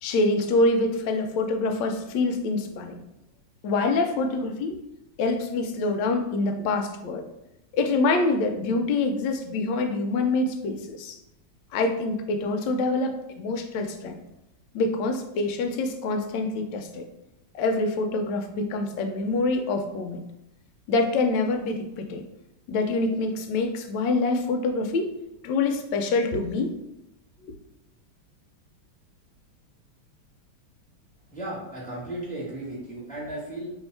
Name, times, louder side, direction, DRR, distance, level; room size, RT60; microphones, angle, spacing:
voice 1, 0.0-3.0 3.6-4.8 5.2-7.2 7.7-11.2 11.7-14.2 14.7-17.0 17.5-20.2 20.9-22.2 22.7-25.1 25.4-26.8, left 3 dB, 75° left, 5 dB, 1.0 m, -25 dB
voice 2, 31.3-33.7, right 1 dB, 5° left, -8 dB, 0.7 m, -35 dB
3.2 x 2.7 x 4.4 m, 0.87 s
omnidirectional pair, 2.3 m